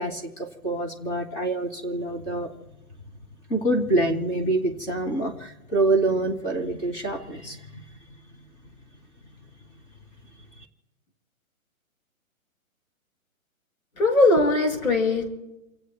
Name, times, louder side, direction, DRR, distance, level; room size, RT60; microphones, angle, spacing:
voice 1, 0.0-2.5 3.5-7.8, right 2 dB, 25° left, 4 dB, 2.6 m, -26 dB
voice 2, 14.0-15.3, left 2 dB, 85° left, 1 dB, 6.4 m, -20 dB
30.0 x 16.5 x 2.3 m, 0.96 s
hypercardioid pair, 155°, 41 cm